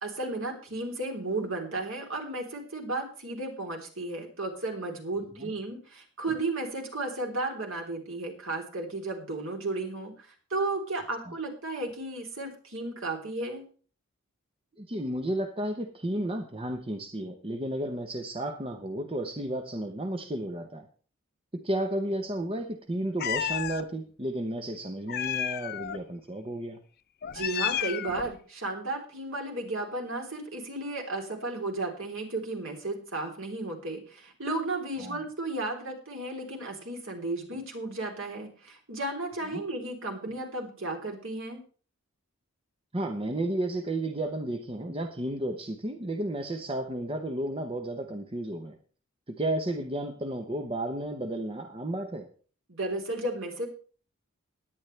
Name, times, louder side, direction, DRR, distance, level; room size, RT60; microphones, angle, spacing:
voice 1, 0.0-13.6 27.3-41.6 52.7-53.7, right 2 dB, 65° right, 1 dB, 3.6 m, -34 dB
voice 2, 5.2-5.5 14.8-20.9 21.5-26.8 35.0-35.2 39.5-39.6 42.9-48.8 49.3-52.3, right 1 dB, 25° right, 5 dB, 1.0 m, -33 dB
Meow, 23.2-23.8 25.1-26.0 27.2-28.3, left 9 dB, 50° left, 0.5 m, -31 dB
17.5 x 10.5 x 3.3 m, 0.40 s
head